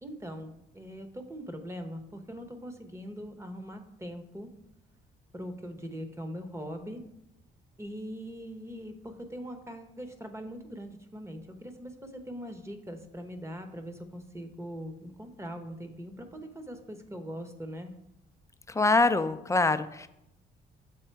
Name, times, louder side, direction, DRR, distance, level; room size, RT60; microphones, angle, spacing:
voice 1, 0.0-4.5 5.3-7.0 7.8-17.9, equal, 15° right, 7 dB, 0.9 m, -41 dB
voice 2, 18.7-20.1, left 3 dB, 15° left, 11 dB, 0.4 m, -24 dB
7.2 x 3.8 x 4.5 m, 0.83 s
cardioid pair, 90°, 20 cm